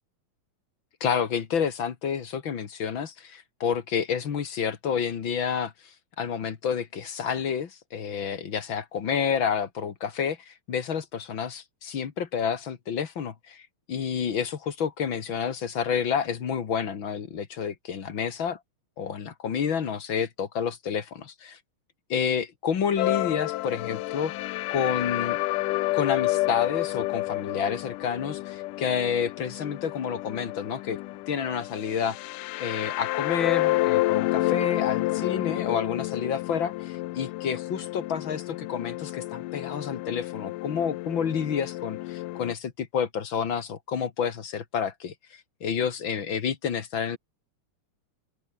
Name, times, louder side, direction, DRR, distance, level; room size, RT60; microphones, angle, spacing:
voice 1, 1.0-18.6 19.0-21.6 22.1-24.3 24.7-25.4 25.9-31.0 31.3-32.2 32.6-47.2, left 7 dB, 45° left, 2.2 m, -29 dB
sound 1, 23.0-42.6, left 19 dB, 85° left, 2.3 m, -30 dB
open air
omnidirectional pair, 3.6 m